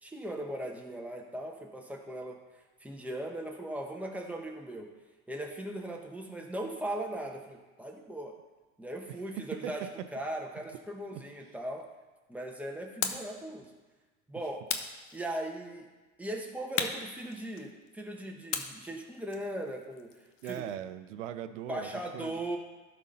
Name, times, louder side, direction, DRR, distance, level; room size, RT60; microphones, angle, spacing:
voice 1, 0.0-2.4 2.8-4.9 5.3-8.3 8.8-11.9 12.3-13.7 14.3-14.6 15.1-15.9 16.2-20.1 20.4-20.6 21.7-22.6, right 1 dB, 5° right, 1 dB, 1.3 m, -38 dB
voice 2, 9.4-9.7 11.1-11.2 20.4-21.9 22.1-22.4, right 10 dB, 85° right, 11 dB, 0.7 m, -39 dB
sound 1, 13.0-13.4 14.7-15.6 16.8-17.9 18.5-20.7, left 7 dB, 90° left, 1.0 m, -37 dB
12.5 x 4.5 x 5.5 m, 1.3 s
supercardioid pair, 110°, 36 cm